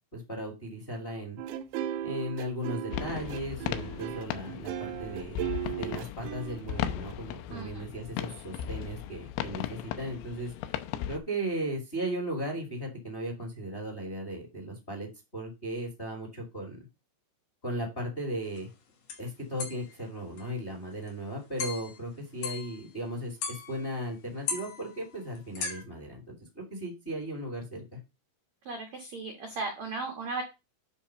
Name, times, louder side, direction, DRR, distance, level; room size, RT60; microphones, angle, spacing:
voice 1, 0.1-1.4 2.0-5.4 5.7-10.5 11.1-16.9 17.6-18.7 19.2-28.0, right 1 dB, 20° left, 2 dB, 1.9 m, -36 dB
sound 1, 1.4-7.1, right 11 dB, 90° right, 3.2 m, -36 dB
sound 2, 2.9-11.2, left 11 dB, 80° left, 2.8 m, -37 dB
voice 2, 7.5-7.9 28.6-30.4, right 3 dB, 75° right, 3 dB, 1.6 m, -36 dB
sound 3, 18.6-18.7 19.1-19.3 19.6-19.9 20.4-20.5 20.9-21.1 21.6-22.0 22.4-22.9 23.4-24.2 24.4-25.8, left 6 dB, 60° left, 4.0 m, -37 dB
10.0 x 3.5 x 6.5 m, 0.26 s
omnidirectional pair, 5.6 m